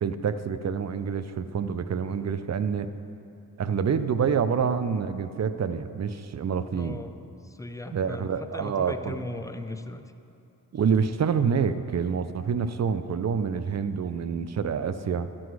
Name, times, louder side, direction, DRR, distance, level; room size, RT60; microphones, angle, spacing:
voice 1, 0.0-2.9 3.6-7.0 7.9-9.3 10.7-15.3, right 6 dB, 45° right, 12 dB, 0.5 m, -27 dB
voice 2, 6.7-7.1 7.4-10.0, left 2 dB, 10° left, 7 dB, 0.5 m, -38 dB
12.5 x 6.2 x 4.7 m, 2.7 s
cardioid pair, 65°, 39 cm